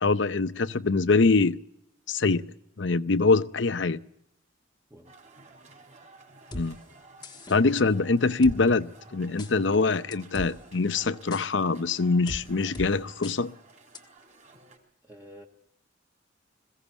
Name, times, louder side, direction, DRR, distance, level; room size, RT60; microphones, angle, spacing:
voice 1, 0.0-1.6 2.1-2.4 2.8-4.0 6.5-6.8 7.5-13.5, left 3 dB, 70° left, 0.7 m, -24 dB
sound 1, 5.0-14.8, right 3 dB, 40° right, 4.0 m, -54 dB
sound 2, 6.5-6.7 7.2-7.6 8.4-8.6 9.4-9.5 10.1-10.5 11.3-11.4 12.3-12.4 12.7-12.9 13.2-13.4 13.9-14.0, left 1 dB, 25° left, 1.3 m, -37 dB
voice 2, 15.0-15.5, equal, 10° right, 1.4 m, -48 dB
21.5 x 16.0 x 8.2 m
head